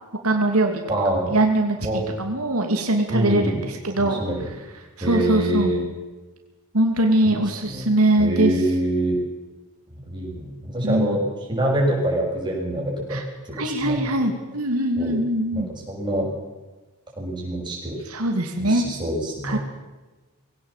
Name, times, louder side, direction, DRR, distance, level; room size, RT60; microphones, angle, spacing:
voice 1, 0.2-0.8 1.3-3.5 3.8-4.2 5.0-5.8 6.7-8.5 10.8-11.2 13.1-13.2 13.6-15.7 18.1-18.8 19.4-19.6, right 1 dB, 80° right, 3 dB, 2.7 m, -22 dB
voice 2, 0.9-1.4 1.8-2.0 3.1-3.6 4.0-4.4 5.0-5.8 7.2-7.4 7.6-7.9 8.2-9.2 10.0-11.2 11.5-13.2 13.6-14.3 15.0-15.2 15.5-16.3 17.2-18.0 18.6-19.6, right 1 dB, 20° right, -2 dB, 7.0 m, -25 dB
21.0 x 17.5 x 7.5 m, 1.2 s
head